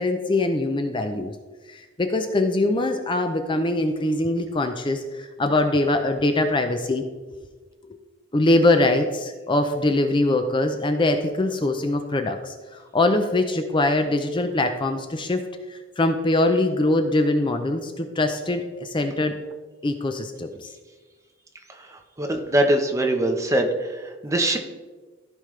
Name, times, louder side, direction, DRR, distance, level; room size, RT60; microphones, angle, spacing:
voice 1, 0.0-1.3 1.7-7.0 8.3-15.4 15.7-19.4 19.8-20.7, left 2 dB, 25° left, 6 dB, 0.5 m, -23 dB
voice 2, 21.7-24.6, right 1 dB, 15° right, 3 dB, 0.9 m, -23 dB
15.0 x 5.2 x 3.2 m, 1.3 s
head